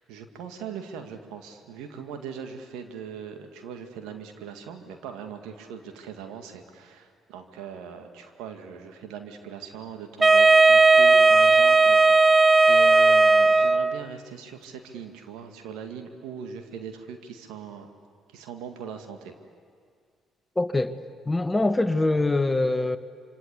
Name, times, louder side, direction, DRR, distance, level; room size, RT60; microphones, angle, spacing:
voice 1, 0.0-17.9 18.3-19.3, right 7 dB, 75° right, 2.0 m, -40 dB
Wind instrument woodwind instrument, 10.2-14.1, right 3 dB, 25° right, 0.7 m, -16 dB
voice 2, 20.6-20.9 21.3-23.0, left 2 dB, 20° left, 1.3 m, -23 dB
26.0 x 26.0 x 8.4 m
hypercardioid pair, 50°, 0 cm